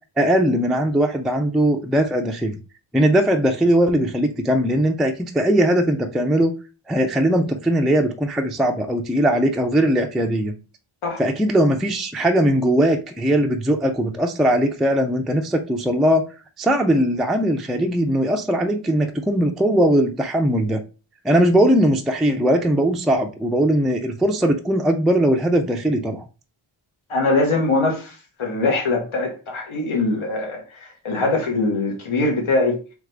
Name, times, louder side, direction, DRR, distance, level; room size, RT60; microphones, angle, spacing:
voice 1, 0.2-2.6 2.9-6.5 6.9-10.5 11.2-16.2 16.6-20.8 21.2-26.3, right 1 dB, ahead, 0.3 m, -19 dB
voice 2, 27.1-30.6 31.0-32.8, left 2 dB, 80° left, 1.3 m, -22 dB
3.7 x 3.1 x 3.3 m
wide cardioid pair, 110°, 48 cm